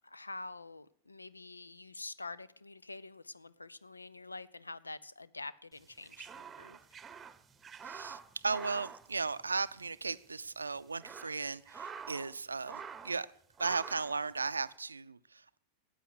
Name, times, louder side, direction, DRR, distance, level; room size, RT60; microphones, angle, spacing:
voice 1, 0.0-6.8, left 3 dB, 80° left, 0.6 m, -47 dB
sound 1, 5.8-9.9 10.1-10.3 10.8-12.3 12.6-13.2 13.6-14.2, right 6 dB, 20° right, 0.9 m, -47 dB
voice 2, 7.8-13.3 13.6-15.6, right 4 dB, 75° right, 0.5 m, -36 dB
14.0 x 9.0 x 8.1 m
figure-of-eight pair, 90°, 0 cm